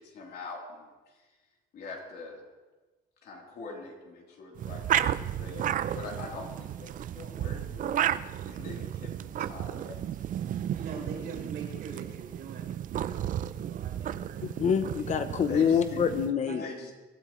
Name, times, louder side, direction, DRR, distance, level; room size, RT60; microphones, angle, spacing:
voice 1, 0.0-1.4 1.7-2.4 3.2-8.2 8.5-10.2 15.4-16.0 16.6-16.9, left 3 dB, 60° left, -1 dB, 3.3 m, -43 dB
sound 1, 4.5-16.3, right 11 dB, 45° right, 0.4 m, -33 dB
voice 2, 10.5-14.6 16.4-16.6, right 4 dB, 80° right, -1 dB, 4.1 m, -43 dB
voice 3, 14.4-16.6, left 7 dB, 40° left, 10 dB, 0.7 m, -26 dB
23.0 x 13.0 x 3.1 m, 1.2 s
cardioid pair, 145°, 18 cm